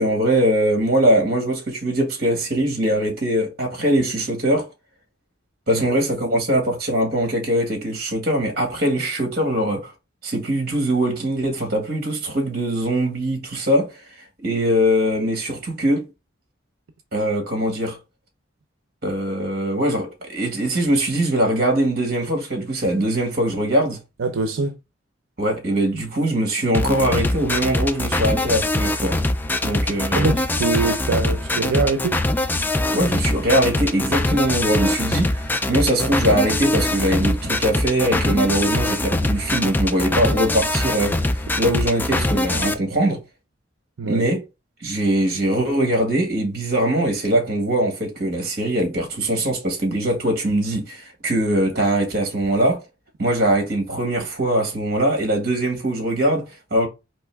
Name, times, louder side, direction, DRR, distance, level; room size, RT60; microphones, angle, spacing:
voice 1, 0.0-4.7 5.7-9.9 10.2-14.0 14.4-16.1 17.1-18.0 19.0-24.0 25.4-29.2 29.6-30.3 32.9-41.2 41.6-43.2 44.1-44.4 44.8-52.8 53.2-56.9, right 1 dB, 50° right, 1.8 m, -21 dB
voice 2, 24.2-24.8 30.1-32.2 44.0-44.2, right 4 dB, 90° right, 0.6 m, -23 dB
sound 1, 26.7-42.7, left 1 dB, 10° left, 0.3 m, -23 dB
4.3 x 3.1 x 3.4 m
head